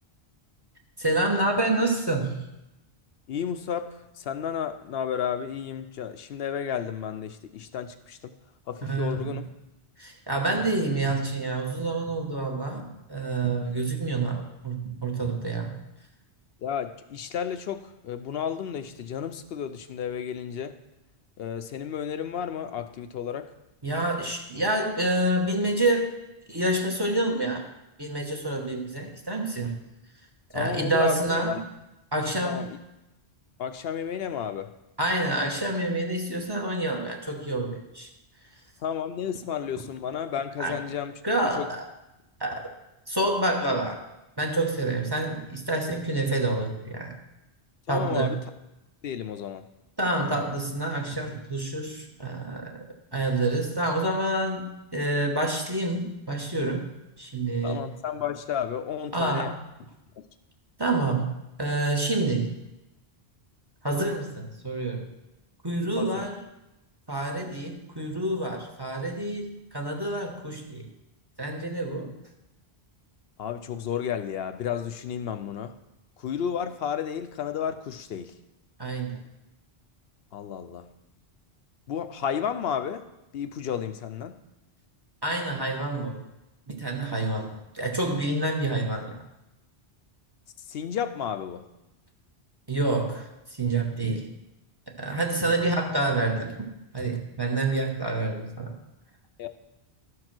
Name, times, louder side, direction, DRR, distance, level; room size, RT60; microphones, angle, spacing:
voice 1, 1.0-2.5 8.8-9.4 10.0-15.8 23.8-26.1 26.5-27.7 28.0-29.7 30.5-31.7 32.1-32.7 35.0-38.1 40.6-40.8 41.2-41.9 42.4-42.6 43.1-44.0 44.4-47.2 47.9-48.4 50.0-52.8 53.1-56.9 57.2-57.9 59.1-59.5 60.8-62.5 63.8-65.1 65.6-66.4 67.1-70.9 71.4-72.2 78.8-79.2 85.2-86.2 86.7-89.2 92.7-94.3 94.9-96.7 96.9-98.8, right 2 dB, 25° right, 1 dB, 1.1 m, -28 dB
voice 2, 3.3-8.3 8.7-9.5 16.6-20.8 21.4-23.5 30.5-31.6 32.4-32.8 33.6-34.7 38.8-41.1 41.6-41.7 47.9-48.4 49.0-49.6 57.6-59.5 66.0-66.3 73.4-75.7 76.2-78.3 80.3-80.9 81.9-83.0 83.3-84.4 90.7-91.6 99.4-99.5, left 8 dB, 70° left, 9 dB, 0.8 m, -32 dB
12.5 x 4.8 x 6.0 m, 0.95 s
omnidirectional pair, 1.1 m